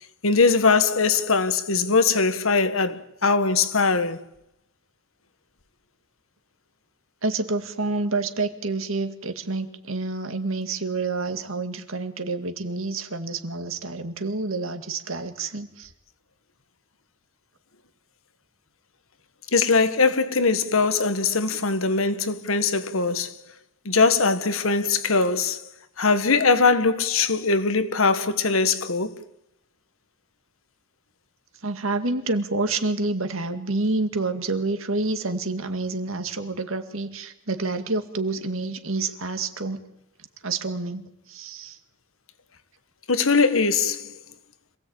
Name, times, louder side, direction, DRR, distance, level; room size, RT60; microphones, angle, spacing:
voice 1, 0.2-4.2 19.5-23.4 23.8-25.6 26.0-29.2 43.1-44.2, left 4 dB, 85° left, 1.6 m, -21 dB
voice 2, 7.2-15.9 31.6-39.8 40.4-41.8, right 3 dB, 80° right, 2.1 m, -28 dB
26.5 x 17.0 x 8.9 m
head